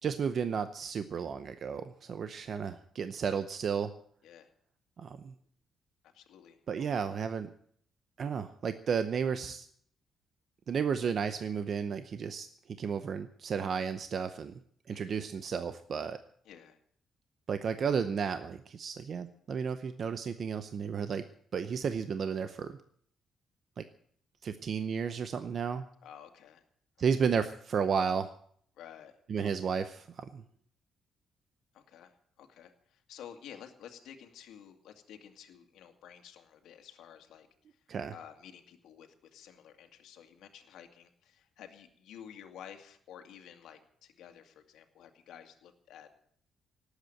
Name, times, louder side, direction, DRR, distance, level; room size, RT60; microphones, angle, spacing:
voice 1, 0.0-3.9 5.0-5.3 6.7-7.5 8.2-9.7 10.7-12.5 12.8-14.5 14.9-16.2 17.5-21.2 21.5-22.8 23.8-23.9 24.4-25.8 27.0-28.3 29.3-30.4 37.9-38.1, right 6 dB, 40° right, 10 dB, 0.7 m, -33 dB
voice 2, 6.0-6.9 14.9-15.2 16.4-16.8 26.0-26.6 28.8-29.1 29.4-29.5 31.7-37.8 38.1-46.1, left 9 dB, 80° left, 5 dB, 2.1 m, -52 dB
18.5 x 8.2 x 9.1 m, 0.62 s
cardioid pair, 165°, 0 cm